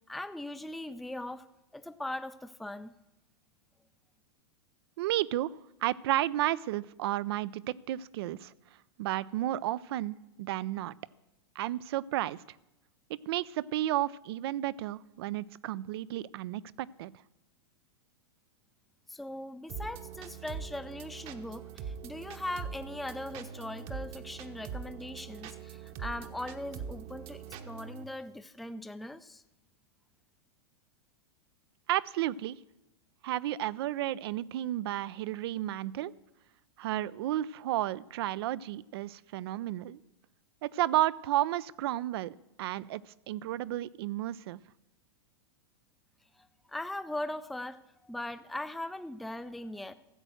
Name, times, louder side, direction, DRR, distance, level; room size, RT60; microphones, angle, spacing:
voice 1, 0.1-1.5 1.7-2.9 19.1-29.4 46.4-49.9, left 1 dB, ahead, 11 dB, 0.4 m, -40 dB
voice 2, 5.0-5.5 5.8-8.5 9.0-10.9 11.6-12.4 13.3-17.1 31.9-32.6 33.2-36.1 36.8-40.0 40.6-43.0 43.3-44.6, right 14 dB, 65° right, 19 dB, 0.4 m, -32 dB
sound 1, 19.7-28.0, right 7 dB, 40° right, 1.0 m, -43 dB
13.5 x 7.8 x 6.2 m, 0.95 s
hypercardioid pair, 120°, 14 cm